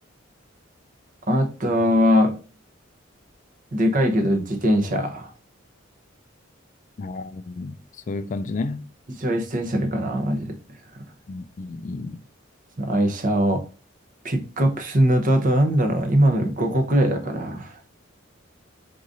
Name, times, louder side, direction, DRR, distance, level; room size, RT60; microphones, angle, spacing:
voice 1, 1.3-2.3 3.7-5.3 9.2-10.5 10.9-11.0 12.8-13.6 14.2-17.8, equal, 40° right, 0.8 m, -21 dB
voice 2, 7.0-7.8 8.1-8.9 11.3-12.2, left 3 dB, 40° left, 0.3 m, -31 dB
4.7 x 3.8 x 2.6 m
head